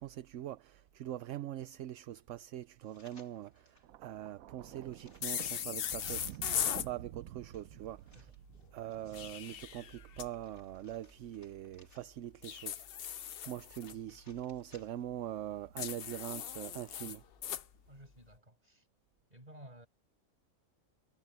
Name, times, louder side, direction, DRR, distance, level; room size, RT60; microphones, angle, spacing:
voice 1, 0.0-8.3 8.7-12.8 13.1-17.2, right 12 dB, 65° right, 0.9 m, -43 dB
sound 1, 2.8-3.9 4.4-6.9 7.5-9.6 10.1-12.4 12.9-15.2 15.6-15.7, left 2 dB, 80° left, 4.8 m, -66 dB
Thunder, 3.8-10.2 11.2-11.4, right 13 dB, 85° right, 1.1 m, -51 dB
sound 2, 5.2-6.9 8.9-10.3 12.4-13.9 15.8-17.6, left 9 dB, 55° left, 0.7 m, -38 dB
voice 2, 17.9-18.9 19.3-19.9, right 1 dB, 30° right, 7.6 m, -55 dB
omnidirectional pair, 1.5 m